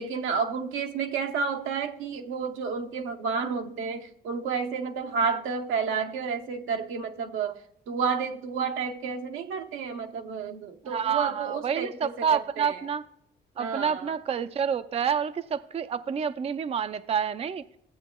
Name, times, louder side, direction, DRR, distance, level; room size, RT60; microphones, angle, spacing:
voice 1, 0.0-7.6 7.9-12.8 13.6-14.1, right 5 dB, 85° right, 0.9 m, -31 dB
voice 2, 10.9-13.0 13.6-17.6, right 7 dB, 30° right, 0.4 m, -28 dB
15.0 x 8.3 x 2.2 m
cardioid pair, 90°, 20 cm